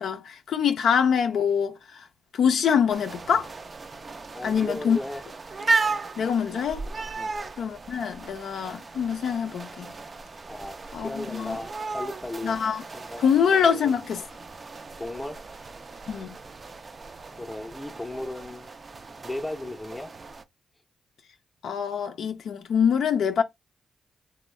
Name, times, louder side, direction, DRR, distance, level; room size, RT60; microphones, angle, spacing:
voice 1, 0.0-2.1 2.3-3.5 4.4-5.0 6.2-6.8 7.6-9.9 10.9-11.6 12.4-12.8 13.2-14.2 16.1-16.4 21.6-23.4, left 7 dB, 75° left, 0.4 m, -24 dB
sound 1, 2.9-20.4, right 3 dB, 40° right, 0.4 m, -35 dB
voice 2, 4.3-5.3 7.2-7.4 10.5-12.6 12.9-13.2 13.7-14.0 15.0-15.4 17.4-18.7 19.2-20.1, left 1 dB, 15° left, 0.5 m, -36 dB
3.0 x 2.0 x 3.1 m
cardioid pair, 65°, 0 cm